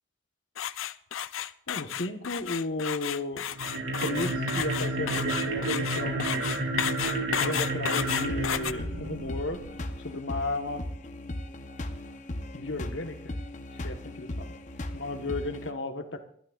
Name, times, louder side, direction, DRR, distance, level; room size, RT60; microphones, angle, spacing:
sound 1, 0.6-8.7, left 10 dB, 90° left, 0.5 m, -32 dB
voice 1, 1.7-3.5 4.0-6.5 7.4-9.6 10.0-10.8 12.5-13.3 13.8-14.5 14.9-16.2, left 2 dB, 70° left, 6 dB, 1.3 m, -34 dB
sound 2, 3.5-9.8, right 2 dB, 80° right, 3.2 m, -31 dB
sound 3, 8.0-15.7, left 1 dB, 40° left, 0.7 m, -38 dB
25.0 x 12.0 x 2.5 m, 0.63 s
head